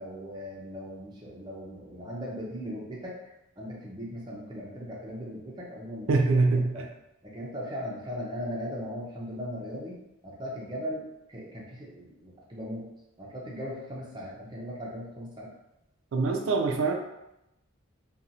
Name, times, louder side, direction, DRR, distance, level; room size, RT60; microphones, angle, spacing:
voice 1, 0.0-3.2 3.6-6.2 6.5-6.8 7.2-12.9 13.2-15.5, equal, 20° right, -5 dB, 0.6 m, -38 dB
voice 2, 6.1-6.7 16.1-16.9, right 3 dB, 65° right, 3 dB, 0.4 m, -23 dB
2.9 x 2.3 x 2.6 m, 0.87 s
head